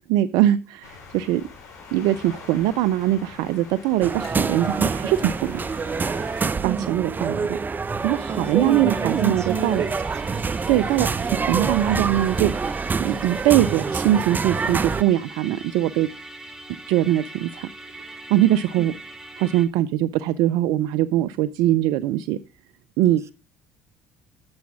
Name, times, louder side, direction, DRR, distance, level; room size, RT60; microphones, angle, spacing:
voice 1, 0.1-1.4 1.9-5.6 6.6-7.6 8.0-9.8 10.7-12.5 13.0-16.1 16.9-18.9 19.4-22.4 23.0-23.2, right 13 dB, 70° right, 0.4 m, -22 dB
sound 1, 0.8-6.5, left 4 dB, 55° left, 4.9 m, -43 dB
sound 2, 4.0-15.0, right 4 dB, 25° right, 0.6 m, -26 dB
voice 2, 6.6-7.0 8.3-10.4, right 6 dB, 40° right, 1.3 m, -28 dB
Musical instrument, 8.0-19.7, right 2 dB, 10° right, 2.5 m, -41 dB
9.6 x 7.1 x 6.0 m
hypercardioid pair, 60°, 7 cm